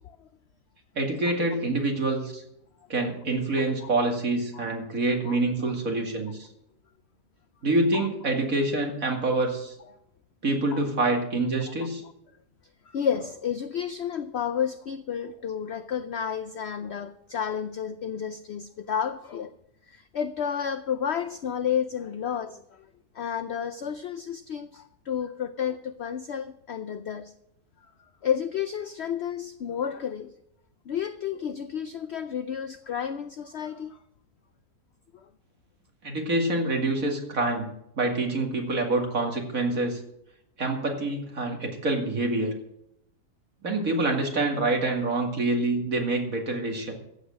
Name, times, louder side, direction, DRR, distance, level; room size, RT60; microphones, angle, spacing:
voice 1, 0.9-2.4 2.9-6.5 7.6-9.7 10.4-12.0 36.0-37.7 38.0-40.0 40.6-42.6 43.6-46.9, right 2 dB, 60° right, 1 dB, 2.7 m, -26 dB
voice 2, 5.3-5.7 7.9-8.1 10.7-10.8 12.9-19.5 19.9-27.3 28.2-30.3 30.9-34.0 35.1-35.3, left 8 dB, 70° left, 11 dB, 0.6 m, -31 dB
14.5 x 8.0 x 6.3 m, 0.78 s
omnidirectional pair, 1.7 m